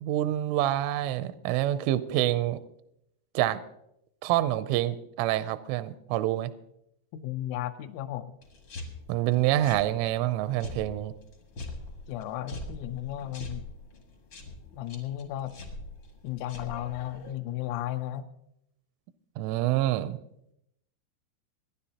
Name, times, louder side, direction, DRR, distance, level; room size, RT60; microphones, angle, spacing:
voice 1, 0.0-2.6 3.4-3.6 4.2-6.5 9.1-11.1 19.4-20.2, right 14 dB, 85° right, 12 dB, 2.9 m, -27 dB
voice 2, 7.1-8.3 12.1-13.7 14.7-15.6 16.2-18.3, left 13 dB, 85° left, 7 dB, 3.3 m, -34 dB
sound 1, 8.4-17.3, left 2 dB, 70° left, 1.3 m, -43 dB
25.0 x 10.0 x 2.9 m, 0.80 s
omnidirectional pair, 5.9 m